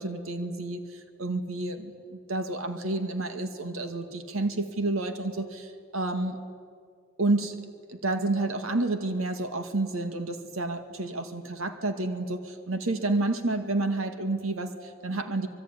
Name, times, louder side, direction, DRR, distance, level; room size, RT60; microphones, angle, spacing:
voice 1, 0.0-6.4 7.2-7.6 7.9-15.5, right 2 dB, 90° right, 7 dB, 2.1 m, -30 dB
26.0 x 22.0 x 9.8 m, 2.2 s
head